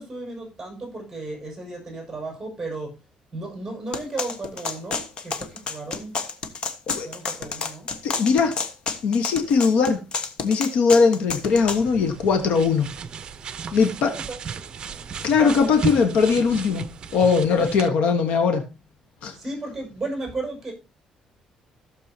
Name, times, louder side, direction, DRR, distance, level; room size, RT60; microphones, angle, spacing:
voice 1, 0.0-3.0 3.3-6.1 7.0-7.9 14.0-15.8 19.3-20.7, right 2 dB, 10° right, 5.7 m, -35 dB
sound 1, 3.9-11.8, left 5 dB, 50° left, 1.3 m, -30 dB
voice 2, 8.0-8.6 9.0-10.0 10.4-12.9 13.7-14.1 15.2-16.8 17.1-18.6 19.2-19.3, left 5 dB, 80° left, 1.3 m, -20 dB
sound 2, 11.5-17.9, right 6 dB, 40° right, 0.7 m, -35 dB
16.0 x 6.7 x 2.8 m
cardioid pair, 135°, 2 cm